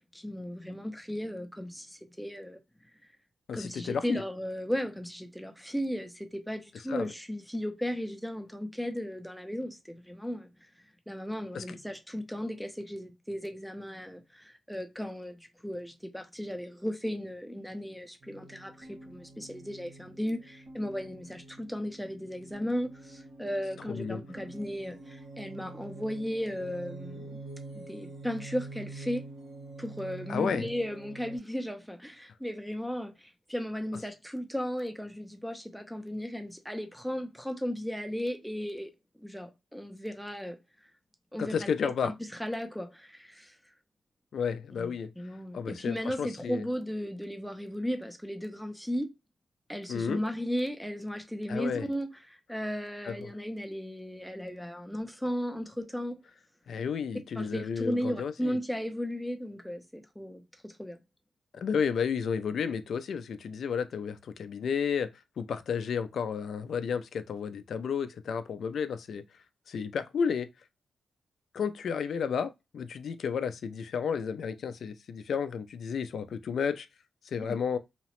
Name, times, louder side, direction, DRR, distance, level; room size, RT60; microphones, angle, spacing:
voice 1, 0.1-2.6 3.5-10.5 11.1-27.4 27.7-29.3 29.8-38.9 39.2-40.6 41.3-41.7 42.0-43.6 44.8-49.1 49.7-56.2 57.3-61.0, equal, ahead, 0.5 m, -35 dB
voice 2, 3.5-4.2 6.9-7.1 11.5-11.6 23.9-24.2 30.3-30.7 41.4-42.1 44.3-45.1 45.5-46.6 49.9-50.2 51.5-51.9 53.0-53.3 56.7-58.6 61.6-65.1 65.4-69.2 69.7-70.5 71.5-76.9 77.3-77.8, left 6 dB, 65° left, 0.3 m, -32 dB
sound 1, 18.2-31.4, right 2 dB, 75° right, 1.2 m, -46 dB
2.9 x 2.0 x 2.9 m
wide cardioid pair, 155°, 0 cm